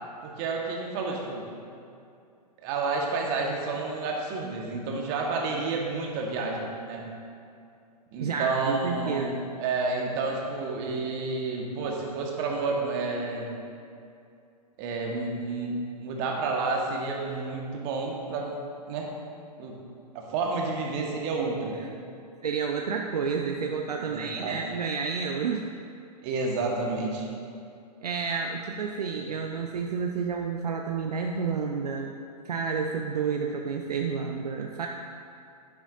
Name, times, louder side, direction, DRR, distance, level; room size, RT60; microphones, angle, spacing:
voice 1, 0.2-1.5 2.6-7.1 8.1-13.5 14.8-18.5 18.9-19.1 19.6-19.9 20.1-21.8 24.0-24.6 26.2-27.3, right 3 dB, 35° right, -1 dB, 1.6 m, -30 dB
voice 2, 8.2-9.4 22.4-25.7 28.0-32.1 32.4-34.9, right 5 dB, 70° right, 2 dB, 0.7 m, -30 dB
10.5 x 10.5 x 2.7 m, 2.5 s
figure-of-eight pair, 110°, 21 cm